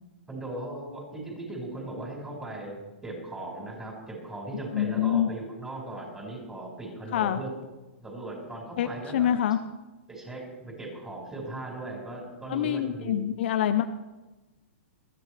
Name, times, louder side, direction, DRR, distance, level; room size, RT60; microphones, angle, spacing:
voice 1, 0.3-7.5 8.0-9.3 10.1-13.2, right 2 dB, 10° right, -1 dB, 5.1 m, -38 dB
voice 2, 4.7-5.3 7.1-7.4 8.8-9.6 12.5-13.8, left 10 dB, 60° left, 9 dB, 0.7 m, -26 dB
20.5 x 14.0 x 3.4 m, 1.1 s
hypercardioid pair, 125°, 7 cm